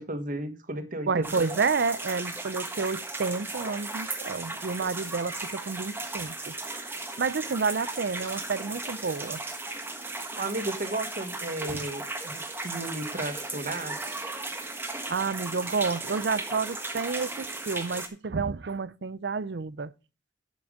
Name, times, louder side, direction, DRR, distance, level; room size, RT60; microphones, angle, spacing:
voice 1, 0.0-1.6 10.1-14.0, right 2 dB, 50° right, 1.4 m, -34 dB
voice 2, 1.1-6.6 7.2-9.4 11.7-11.9 15.1-19.9, right 4 dB, 65° right, 0.5 m, -30 dB
sound 1, 1.2-18.1, right 2 dB, 10° right, 1.4 m, -36 dB
10.5 x 6.1 x 5.0 m
head